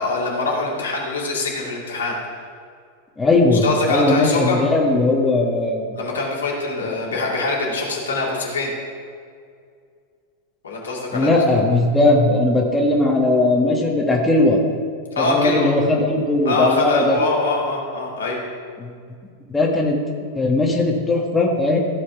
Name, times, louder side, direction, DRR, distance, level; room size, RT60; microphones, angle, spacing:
voice 1, 0.0-2.1 3.5-4.6 5.9-8.7 10.6-11.4 15.1-15.7 16.4-18.4, left 3 dB, 70° left, -3 dB, 2.4 m, -23 dB
voice 2, 3.2-5.9 11.1-14.6 15.2-17.2 18.8-18.9 19.5-20.0 20.3-21.8, left 2 dB, 10° left, -1 dB, 1.4 m, -18 dB
14.5 x 4.9 x 5.8 m, 2.2 s
figure-of-eight pair, 90°, 0 cm